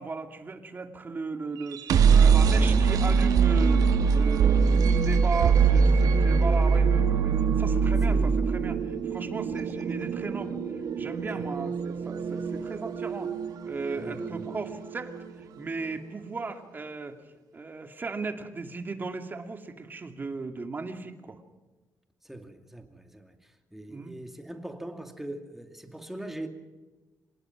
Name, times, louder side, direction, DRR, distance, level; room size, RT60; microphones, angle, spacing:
voice 1, 0.0-10.6 11.0-13.3 13.6-17.2 17.5-21.4 23.9-24.1, right 3 dB, 30° right, 2.4 m, -36 dB
sound 1, 1.6-15.5, right 5 dB, 85° right, 2.1 m, -23 dB
voice 2, 5.7-6.5 8.1-8.4 11.3-11.5 14.0-14.6 22.2-23.3 23.7-26.5, right 1 dB, 5° right, 2.5 m, -41 dB
26.0 x 19.5 x 6.0 m
cardioid pair, 125°, 6 cm